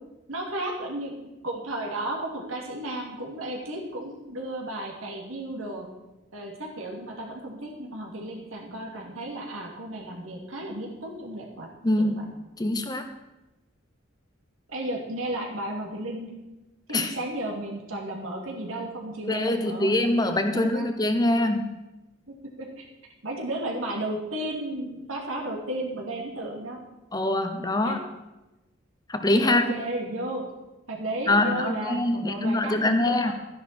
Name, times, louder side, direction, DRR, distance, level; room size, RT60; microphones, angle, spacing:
voice 1, 0.3-5.9 6.3-11.7 12.0-12.2 14.7-16.4 16.9-20.9 22.3-22.9 23.2-26.8 27.8-28.0 29.4-30.4 30.9-33.3, right 1 dB, 85° right, -1 dB, 2.6 m, -34 dB
voice 2, 11.8-13.1 16.9-17.2 19.3-21.8 27.1-28.0 29.1-29.7 31.3-33.3, left 1 dB, 20° left, 7 dB, 0.8 m, -24 dB
13.0 x 10.5 x 4.3 m, 1.0 s
head